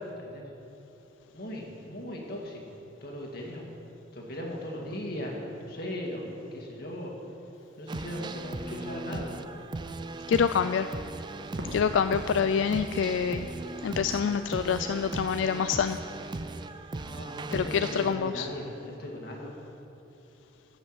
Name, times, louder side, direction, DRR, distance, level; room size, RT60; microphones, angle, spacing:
voice 1, 1.3-3.7 4.1-5.3 5.6-7.1 7.8-9.3 17.1-19.5, left 1 dB, 55° left, -1 dB, 2.0 m, -38 dB
Crackle, 7.5-15.3, equal, 70° right, 1.6 m, -48 dB
sound 1, 7.9-18.1, right 2 dB, 25° right, 0.4 m, -38 dB
voice 2, 10.3-10.9 11.7-13.5 13.8-16.0 17.5-18.5, left 7 dB, 80° left, 10 dB, 0.3 m, -26 dB
13.0 x 6.0 x 7.9 m, 3.0 s
head